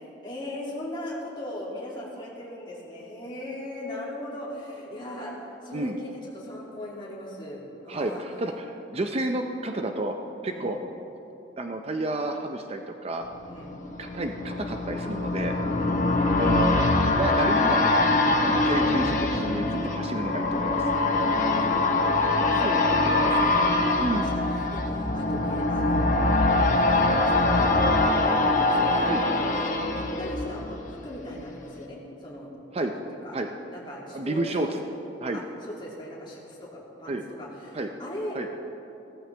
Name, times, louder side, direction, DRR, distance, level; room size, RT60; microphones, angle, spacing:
voice 1, 0.2-5.3 5.6-8.2 10.4-10.7 13.5-13.8 15.7-16.0 21.3-21.9 22.6-24.4 24.7-26.1 26.5-33.3 33.7-34.8 35.3-38.4, left 1 dB, 25° left, -5 dB, 2.6 m, -39 dB
voice 2, 7.9-10.2 10.4-10.8 11.6-13.3 14.0-15.6 16.4-16.8 17.1-18.1 18.4-20.8 22.6-22.7 24.0-24.3 29.1-29.2 32.7-32.9 33.3-33.5 34.1-34.8 35.2-35.4 37.1-37.2 37.7-37.9 38.3-38.5, right 2 dB, 35° right, 5 dB, 0.5 m, -30 dB
sound 1, 13.3-31.1 31.5-31.6, left 2 dB, 45° left, 1.1 m, -23 dB
15.5 x 14.0 x 3.4 m, 2.9 s
head